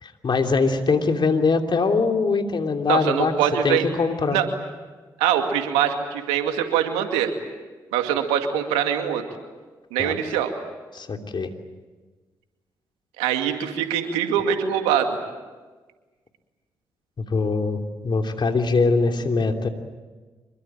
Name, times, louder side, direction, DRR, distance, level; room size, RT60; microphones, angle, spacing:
voice 1, 0.0-3.3 3.6-4.4 10.0-10.1 10.9-11.5 17.2-19.7, left 4 dB, 50° left, 4 dB, 3.1 m, -22 dB
voice 2, 2.9-3.9 4.3-4.5 5.2-7.3 7.9-9.2 9.9-10.5 13.2-15.2, right 9 dB, 85° right, 6 dB, 2.3 m, -23 dB
25.5 x 23.0 x 8.9 m, 1.3 s
hypercardioid pair, 40°, 10 cm